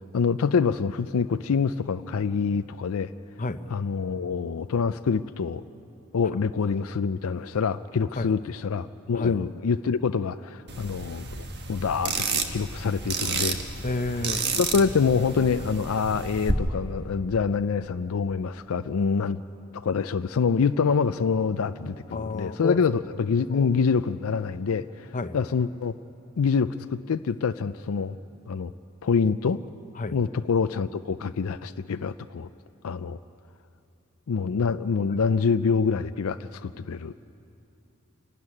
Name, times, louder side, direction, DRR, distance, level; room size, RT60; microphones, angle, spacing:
voice 1, 0.1-3.1 3.7-5.6 6.1-13.6 14.5-19.4 19.7-25.9 26.4-28.2 28.5-28.7 29.0-29.6 30.1-32.5 32.8-33.2 34.3-37.1, left 5 dB, 70° left, 11 dB, 0.4 m, -26 dB
sound 1, 10.7-16.5, right 4 dB, 50° right, 1.4 m, -31 dB
voice 2, 13.8-14.4 22.1-23.0 23.5-23.7 25.1-25.4 30.0-30.1, left 2 dB, 35° left, 10 dB, 0.7 m, -30 dB
27.5 x 12.0 x 9.8 m, 2.7 s
head